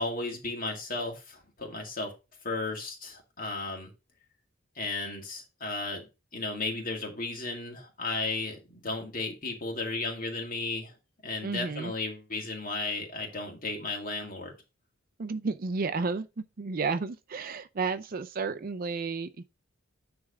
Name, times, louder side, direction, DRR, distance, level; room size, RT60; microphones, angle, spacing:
voice 1, 0.0-2.1 2.4-3.9 4.8-6.0 6.3-10.9 11.2-14.5, left 3 dB, 40° left, 2.1 m, -34 dB
voice 2, 11.4-11.9 15.2-19.4, right 4 dB, 40° right, 0.5 m, -32 dB
9.7 x 3.5 x 4.8 m
head